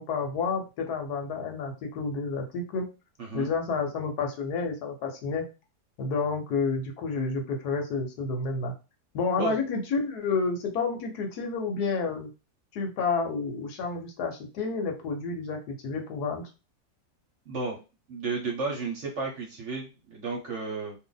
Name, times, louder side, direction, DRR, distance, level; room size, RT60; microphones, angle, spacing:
voice 1, 0.0-2.9 3.3-5.4 6.0-8.7 9.1-12.3 12.7-16.4, left 4 dB, 70° left, 3 dB, 1.2 m, -30 dB
voice 2, 3.2-3.5 9.4-9.5 17.5-17.8 18.1-20.9, right 4 dB, 50° right, 0 dB, 1.0 m, -33 dB
2.7 x 2.5 x 3.9 m, 0.30 s
omnidirectional pair, 1.8 m